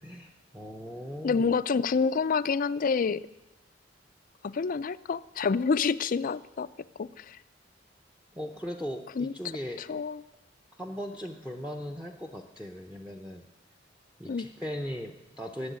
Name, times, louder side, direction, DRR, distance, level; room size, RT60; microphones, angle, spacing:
voice 1, 0.0-1.5 8.4-9.8 10.8-13.4 14.2-15.7, equal, 5° right, 4 dB, 0.7 m, -38 dB
voice 2, 1.2-3.2 4.4-6.7 7.0-7.4 9.2-9.3 9.8-10.2 14.3-14.5, left 5 dB, 45° left, 16 dB, 0.4 m, -28 dB
14.0 x 7.1 x 9.4 m, 0.97 s
head